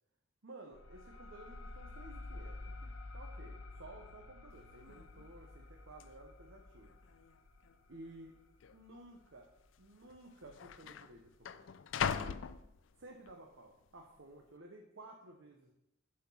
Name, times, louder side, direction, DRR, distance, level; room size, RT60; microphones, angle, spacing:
voice 1, 0.4-6.9 7.9-8.3 8.7-9.5 9.8-11.7 12.2-12.5 13.0-15.7, right 2 dB, 70° right, 1 dB, 0.9 m, -54 dB
sound 1, 0.7-9.9, left 2 dB, 85° left, 1.0 m, -51 dB
sound 2, 4.5-4.6 4.9-5.3 6.0-6.1 6.8-7.4 7.6-7.8 8.6-8.8 9.8-9.9 10.1-13.3 13.8-14.2, left 7 dB, 70° left, 0.4 m, -41 dB
7.7 x 4.4 x 5.7 m, 0.82 s
head